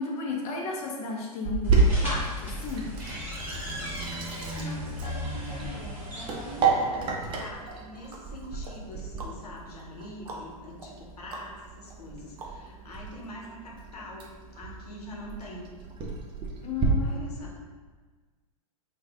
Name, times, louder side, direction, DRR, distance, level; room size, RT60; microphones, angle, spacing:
voice 1, 0.0-2.9 16.6-17.5, left 4 dB, 35° left, -2 dB, 0.7 m, -34 dB
Sink (filling or washing), 1.4-16.9, right 4 dB, 25° right, 0.6 m, -32 dB
sound 1, 1.6-6.6, equal, 10° right, 1.1 m, -36 dB
voice 2, 4.4-15.7 17.0-17.6, left 1 dB, 85° left, -2 dB, 0.8 m, -44 dB
sound 2, 7.6-13.0 13.4-13.5, right 2 dB, 80° right, 0.7 m, -47 dB
3.2 x 2.3 x 3.4 m, 1.4 s
hypercardioid pair, 110°, 19 cm